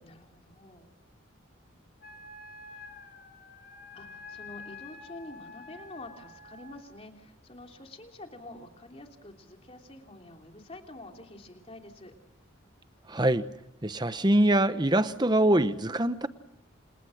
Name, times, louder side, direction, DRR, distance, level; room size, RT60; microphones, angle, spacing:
voice 1, 0.0-0.9 2.7-2.9 3.9-12.1, left 2 dB, 30° left, 3 dB, 3.2 m, -47 dB
Wind instrument woodwind instrument, 2.0-6.9, left 4 dB, 50° left, 3.9 m, -48 dB
voice 2, 13.1-13.5 13.8-16.3, right 1 dB, 20° right, 12 dB, 0.9 m, -24 dB
29.5 x 27.5 x 6.5 m, 0.93 s
head